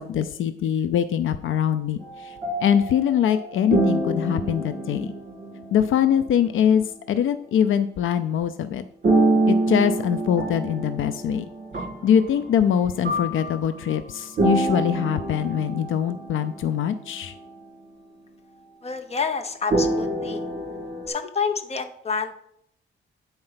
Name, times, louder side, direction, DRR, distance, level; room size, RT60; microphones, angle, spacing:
voice 1, 0.0-2.3 2.6-5.1 5.7-8.8 9.5-11.5 12.0-17.3, left 9 dB, 70° left, 11 dB, 0.5 m, -23 dB
sound 1, 2.0-6.1 9.0-12.6 13.0-16.7 17.1-17.4 19.7-21.1, right 2 dB, 40° right, 2.2 m, -26 dB
voice 2, 18.8-20.4 21.1-22.3, left 5 dB, 30° left, 6 dB, 0.9 m, -28 dB
8.7 x 4.4 x 5.7 m, 0.69 s
cardioid pair, 130°, 21 cm